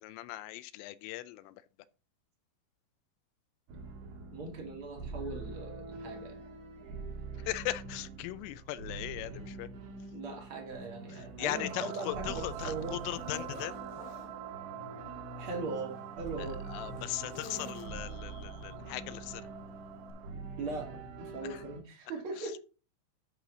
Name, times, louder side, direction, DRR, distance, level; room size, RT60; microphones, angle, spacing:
voice 1, 0.0-1.5 7.5-9.7 11.4-13.8 16.4-19.4, left 16 dB, 90° left, 3.1 m, -38 dB
sound 1, 3.7-21.8, right 3 dB, 60° right, 3.9 m, -45 dB
voice 2, 4.3-6.4 10.1-13.1 15.4-16.6 20.6-22.6, right 3 dB, 45° right, 1.9 m, -40 dB
Zipper (clothing), 10.7-10.8 11.4-14.3 15.3-18.3 19.2-19.5 20.1-20.2, left 6 dB, 65° left, 2.4 m, -52 dB
sound 2, 11.5-20.3, right 11 dB, 80° right, 2.6 m, -46 dB
11.0 x 4.9 x 3.8 m
omnidirectional pair, 5.7 m